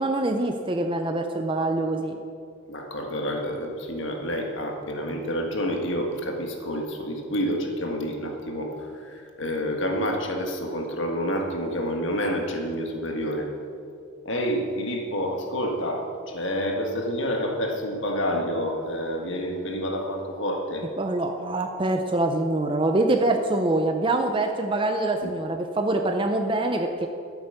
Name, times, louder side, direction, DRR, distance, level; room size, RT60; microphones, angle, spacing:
voice 1, 0.0-2.2 21.0-27.1, right 2 dB, 25° right, 4 dB, 0.6 m, -24 dB
voice 2, 2.7-8.7 9.1-13.5 14.2-20.8 25.2-25.3, equal, 60° left, 2 dB, 1.7 m, -28 dB
13.0 x 8.1 x 6.7 m, 2.4 s
head